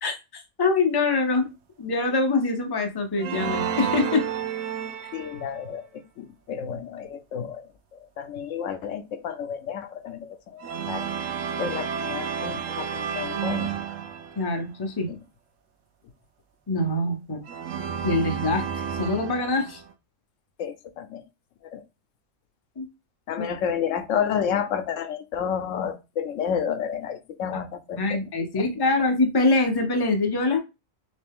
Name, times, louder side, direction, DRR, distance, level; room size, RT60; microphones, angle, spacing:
voice 1, 0.0-1.5 1.8-4.2 14.4-15.1 16.7-17.4 18.0-19.8 22.8-22.9 28.0-30.6, left 3 dB, 25° left, 4 dB, 0.6 m, -24 dB
sound 1, 3.2-5.6 10.6-14.6 17.5-19.9, right 7 dB, 85° right, 0.9 m, -31 dB
voice 2, 5.1-11.1 11.6-13.7 20.6-21.2 21.7-21.8 23.3-28.2, left 8 dB, 80° left, 10 dB, 0.9 m, -31 dB
3.2 x 2.9 x 3.5 m, 0.26 s
omnidirectional pair, 1.3 m